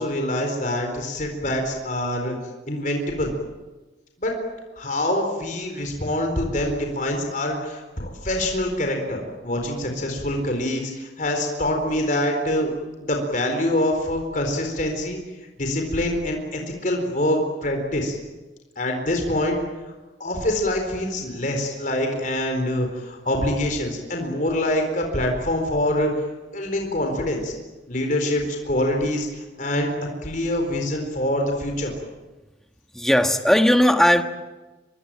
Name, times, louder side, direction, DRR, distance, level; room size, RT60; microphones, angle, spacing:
voice 1, 0.0-2.4 2.7-3.3 4.2-4.3 4.8-12.7 13.0-15.2 15.6-18.2 18.8-19.6 20.2-26.1 26.5-27.5 27.9-29.9 30.2-31.9, left 1 dB, 45° left, 3 dB, 4.3 m, -25 dB
voice 2, 32.9-34.2, equal, ahead, 6 dB, 1.4 m, -17 dB
25.5 x 23.5 x 8.9 m, 1.2 s
head